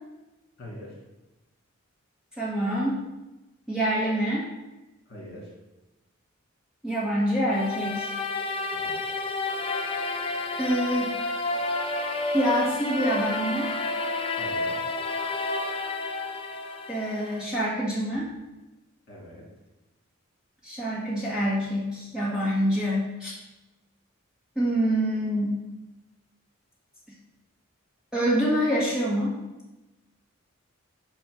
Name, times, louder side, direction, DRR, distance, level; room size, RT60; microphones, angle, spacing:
voice 1, 0.6-1.0 5.1-5.6 8.7-9.0 14.3-14.8 19.1-19.5, left 1 dB, 50° left, -3 dB, 2.3 m, -43 dB
voice 2, 2.4-3.0 3.7-4.5 6.8-8.1 10.6-11.1 12.3-13.7 16.9-18.3 20.6-23.3 24.5-25.6 28.1-29.4, equal, 5° right, -8 dB, 1.6 m, -26 dB
sound 1, 7.5-17.4, left 3 dB, 25° left, 0.4 m, -30 dB
5.2 x 4.5 x 6.3 m, 1.0 s
head